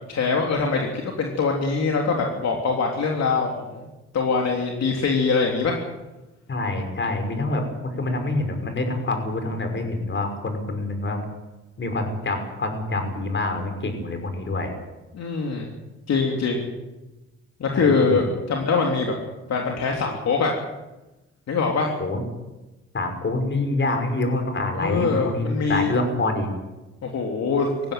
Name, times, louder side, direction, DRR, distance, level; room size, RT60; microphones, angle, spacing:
voice 1, 0.1-3.9 4.1-5.8 15.1-15.7 16.1-16.6 17.6-19.1 19.5-20.5 21.5-21.9 24.7-25.9 27.0-27.7, left 4 dB, 60° left, 1 dB, 3.4 m, -23 dB
voice 2, 6.5-11.2 11.8-14.7 17.7-18.3 22.0-22.2 22.9-26.5, left 2 dB, 40° left, 6 dB, 5.8 m, -26 dB
19.0 x 15.5 x 9.4 m, 1.1 s
cardioid pair, 90°, 30 cm